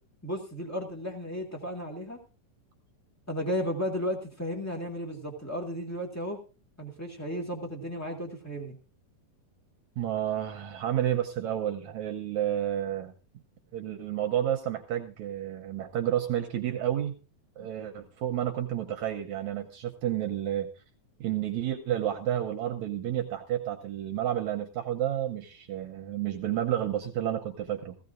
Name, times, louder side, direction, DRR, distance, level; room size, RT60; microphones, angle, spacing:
voice 1, 0.2-2.2 3.3-6.4 6.8-8.7 17.6-17.7, equal, 20° left, 1 dB, 0.4 m, -34 dB
voice 2, 10.0-13.1 13.7-17.2 17.6-20.7 21.2-28.0, right 11 dB, 70° right, 5 dB, 1.9 m, -30 dB
16.5 x 15.5 x 2.5 m, 0.33 s
omnidirectional pair, 4.0 m